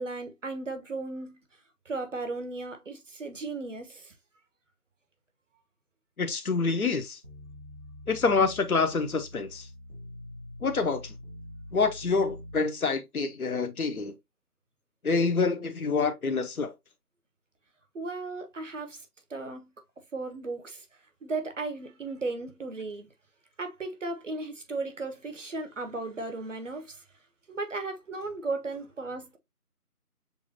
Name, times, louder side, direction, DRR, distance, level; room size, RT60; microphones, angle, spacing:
voice 1, 0.0-1.4 1.8-4.1 17.9-19.7 20.1-20.9 21.2-23.1 23.6-27.0 27.5-29.4, right 3 dB, 55° right, 1.2 m, -36 dB
voice 2, 6.2-7.2 8.1-9.7 10.6-11.1 11.7-14.1 15.0-16.7, left 4 dB, 70° left, 1.0 m, -27 dB
sound 1, 7.2-12.6, left 1 dB, 25° right, 0.9 m, -45 dB
7.0 x 2.4 x 2.8 m
figure-of-eight pair, 160°, 45 cm